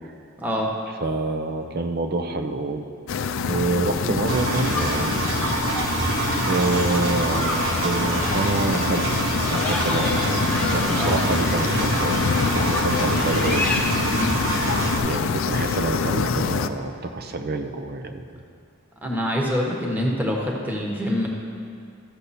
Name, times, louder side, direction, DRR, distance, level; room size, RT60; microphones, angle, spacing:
voice 1, 0.4-0.7 10.0-10.3 10.9-11.2 14.1-14.4 19.0-21.3, equal, 10° right, -2 dB, 1.2 m, -25 dB
voice 2, 1.0-2.9 3.4-5.2 6.4-9.2 9.5-10.2 10.7-13.8 15.0-18.2, right 2 dB, 50° right, 7 dB, 0.7 m, -27 dB
sound 1, 3.1-16.7, left 5 dB, 70° left, 0.4 m, -26 dB
sound 2, 3.8-13.8, left 1 dB, 10° left, 1.2 m, -31 dB
Engine, 4.3-15.0, right 2 dB, 75° right, 1.2 m, -26 dB
13.5 x 6.9 x 4.2 m, 2.4 s
head